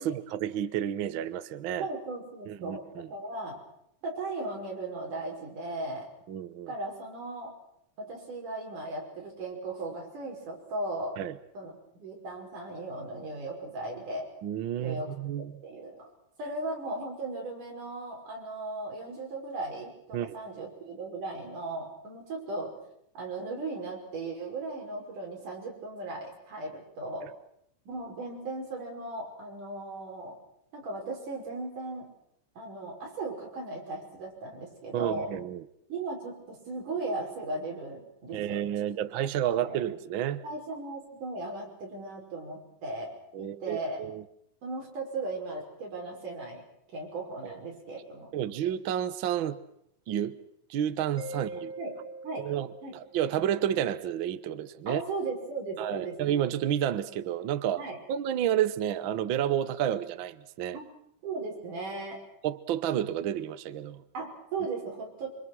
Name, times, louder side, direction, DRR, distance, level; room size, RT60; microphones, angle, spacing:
voice 1, 0.0-1.9 2.5-3.1 6.3-6.7 11.2-11.4 14.4-15.6 20.1-20.4 34.9-35.6 38.3-40.4 43.3-44.2 47.4-47.6 48.3-49.6 50.1-50.3 50.7-51.7 52.4-55.0 55.8-57.8 58.1-60.8 62.4-64.0, right 10 dB, 90° right, 12 dB, 1.0 m, -30 dB
voice 2, 1.8-3.6 4.0-6.1 6.7-7.5 8.0-11.2 11.5-11.7 12.0-14.3 14.8-16.1 16.4-22.7 23.2-27.3 27.9-30.4 30.7-32.1 32.6-35.3 35.9-38.6 39.5-39.8 40.4-44.0 44.6-46.6 46.9-48.3 51.8-51.9 52.2-52.5 52.8-53.0 54.9-56.2 57.8-58.0 60.7-60.9 61.2-62.2 64.1-65.3, right 2 dB, 70° right, -1 dB, 7.3 m, -37 dB
Mallet percussion, 51.2-53.7, right 1 dB, 10° left, 3.4 m, -43 dB
27.0 x 25.0 x 6.3 m, 0.74 s
omnidirectional pair, 3.8 m